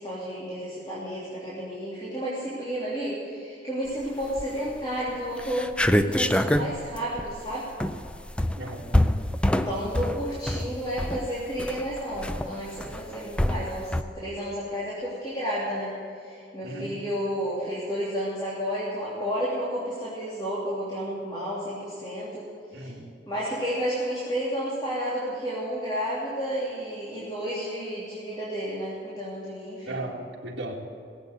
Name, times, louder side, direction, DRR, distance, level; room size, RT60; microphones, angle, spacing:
voice 1, 0.0-7.7 9.4-22.9 23.3-30.0, equal, 25° left, -8 dB, 3.1 m, -31 dB
sound 1, 4.2-4.7 5.1-5.2 5.4-14.0, left 1 dB, 5° left, 0.4 m, -26 dB
voice 2, 8.6-8.9 16.6-17.0 22.7-23.1 29.9-30.7, right 1 dB, 65° right, -3 dB, 2.2 m, -36 dB
18.5 x 8.2 x 8.0 m, 2.5 s
head